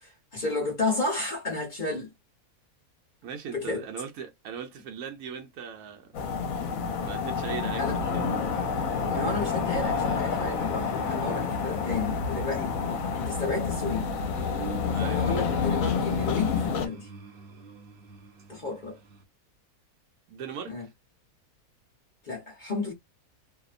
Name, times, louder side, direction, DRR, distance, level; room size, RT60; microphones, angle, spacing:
voice 1, 0.0-2.1 3.5-3.8 7.8-8.0 9.1-12.7 13.2-14.1 15.0-17.1 18.5-19.0 20.7-20.9 22.2-22.9, left 3 dB, 40° left, 0.8 m, -32 dB
voice 2, 3.2-6.2 7.0-8.3 12.8-13.0 14.9-15.2 20.3-20.9, right 7 dB, 75° right, 1.0 m, -39 dB
sound 1, 6.1-16.9, left 6 dB, 70° left, 1.0 m, -29 dB
sound 2, 8.0-19.2, right 5 dB, 55° right, 0.8 m, -44 dB
2.7 x 2.1 x 2.4 m
omnidirectional pair, 1.6 m